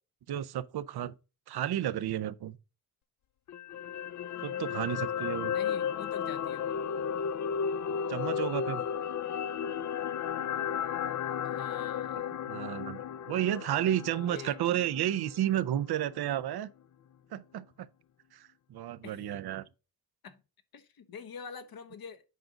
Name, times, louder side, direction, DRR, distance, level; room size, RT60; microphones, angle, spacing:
voice 1, 0.3-1.1 1.5-2.6 4.4-5.5 8.1-8.8 12.5-16.7 17.3-17.9 18.3-19.7, right 11 dB, 85° right, 0.7 m, -32 dB
sound 1, 3.5-15.8 16.1-16.3, left 8 dB, 50° left, 0.4 m, -34 dB
voice 2, 5.4-6.8 11.4-12.3 14.3-14.6 19.0-19.3 20.2-20.4 20.7-22.2, left 6 dB, 70° left, 1.1 m, -46 dB
8.4 x 5.1 x 3.7 m
cardioid pair, 90°, 37 cm